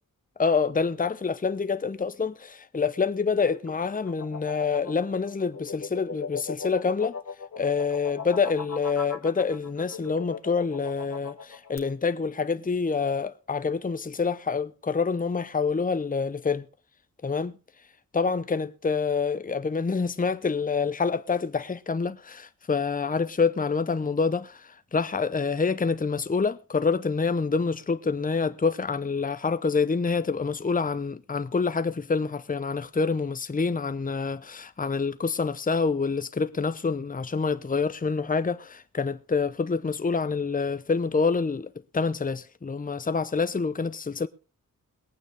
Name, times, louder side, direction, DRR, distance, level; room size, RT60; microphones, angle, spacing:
voice 1, 0.4-7.2 7.6-16.7 17.2-17.5 18.1-44.3, left 5 dB, 25° left, 0.7 m, -27 dB
sound 1, 3.3-11.8, left 5 dB, 50° left, 1.7 m, -39 dB
22.0 x 8.9 x 3.4 m
wide cardioid pair, 75°, 34 cm